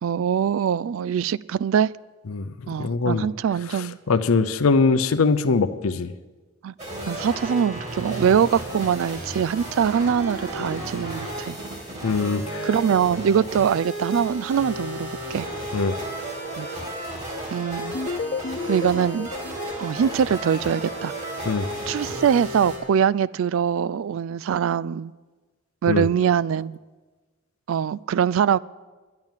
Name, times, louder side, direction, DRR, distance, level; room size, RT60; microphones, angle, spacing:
voice 1, 0.0-1.9 2.7-4.0 6.6-6.7 7.1-11.6 12.6-15.5 16.6-16.7 17.5-18.0 18.7-19.3 19.8-21.1 21.9-25.1 25.8-26.8 27.7-28.6, right 8 dB, 65° right, 20 dB, 0.3 m, -23 dB
voice 2, 2.8-3.3 4.1-6.1 12.0-12.7 15.7-15.9 21.5-21.7 25.9-26.1, left 4 dB, 80° left, 10 dB, 0.6 m, -21 dB
sound 1, 6.8-22.8, right 1 dB, 30° right, 3.2 m, -33 dB
sound 2, 17.9-20.9, left 4 dB, 35° left, 0.3 m, -33 dB
10.5 x 10.5 x 7.3 m, 1.3 s
head